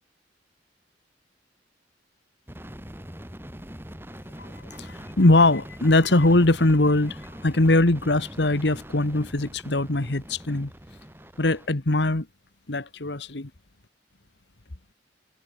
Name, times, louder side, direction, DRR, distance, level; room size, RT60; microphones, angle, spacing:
sound 1, 2.5-11.7, equal, 10° right, 7.3 m, -42 dB
voice 1, 4.8-7.2 7.4-10.7 11.4-12.3 12.7-13.5, left 2 dB, 65° left, 1.5 m, -21 dB
head